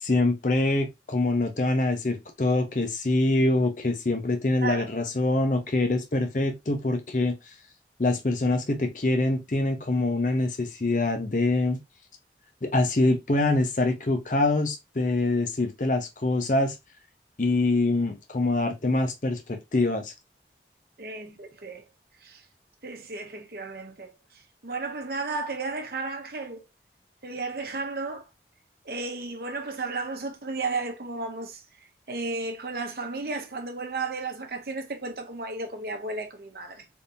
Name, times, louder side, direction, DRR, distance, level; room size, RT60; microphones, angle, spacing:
voice 1, 0.0-7.4 8.0-11.8 12.6-16.8 17.4-20.1, left 2 dB, 45° left, 0.7 m, -25 dB
voice 2, 21.0-21.8 22.2-22.5 22.8-26.7 27.2-28.3 28.8-31.6 32.1-36.9, right 3 dB, 55° right, 0.8 m, -34 dB
3.6 x 2.8 x 2.6 m
head